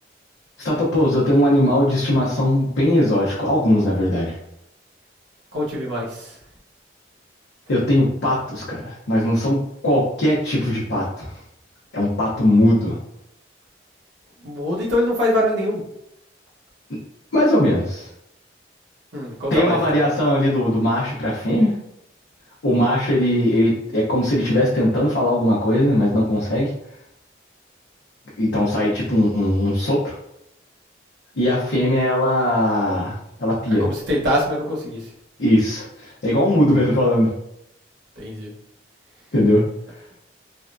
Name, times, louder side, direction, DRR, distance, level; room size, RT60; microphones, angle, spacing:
voice 1, 0.6-4.4 7.7-11.4 11.9-13.0 17.3-18.1 19.5-21.8 22.6-26.7 28.4-30.1 31.3-33.8 35.4-37.3 39.3-39.6, left 1 dB, 75° left, -6 dB, 0.7 m, -19 dB
voice 2, 5.5-6.4 14.4-15.8 19.1-19.8 33.8-35.1 38.2-38.5, left 1 dB, 75° right, -3 dB, 0.9 m, -23 dB
3.4 x 2.2 x 2.5 m, 0.80 s
head